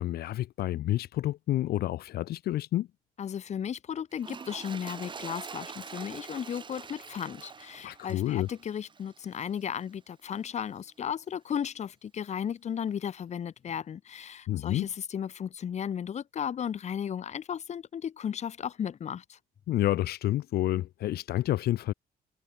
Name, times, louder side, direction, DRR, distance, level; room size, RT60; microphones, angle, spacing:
voice 1, 0.0-2.9 7.8-8.5 14.5-14.9 19.7-21.9, left 14 dB, 80° left, 2.3 m, -29 dB
voice 2, 3.2-19.4, left 8 dB, 45° left, 3.0 m, -35 dB
Toilet flush, 4.1-9.6 10.3-10.4, right 5 dB, 30° right, 3.7 m, -45 dB
cardioid pair, 145°, 16 cm